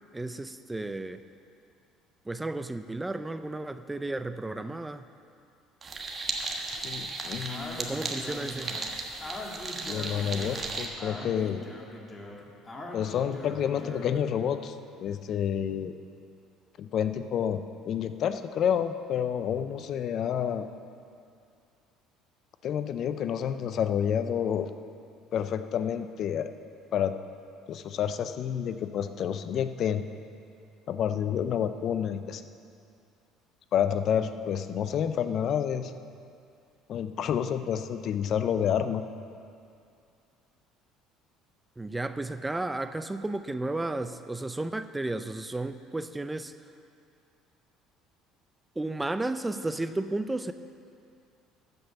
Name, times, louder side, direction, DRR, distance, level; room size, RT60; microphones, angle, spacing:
voice 1, 0.1-1.2 2.3-5.0 7.8-8.8 41.8-46.5 48.8-50.5, right 2 dB, 15° right, 11 dB, 0.5 m, -33 dB
sound 1, 5.8-10.9, right 3 dB, 35° right, 1.4 m, -35 dB
voice 2, 6.7-8.1 9.8-11.7 12.9-15.9 16.8-20.7 22.6-24.7 25.3-26.5 26.9-27.1 27.7-30.0 30.9-32.4 33.7-35.9 36.9-39.0, left 8 dB, 55° left, 10 dB, 0.5 m, -29 dB
Speech, 7.5-14.2, left 2 dB, 25° left, 1.9 m, -41 dB
13.5 x 5.4 x 7.0 m, 2.4 s
supercardioid pair, 80°, 0 cm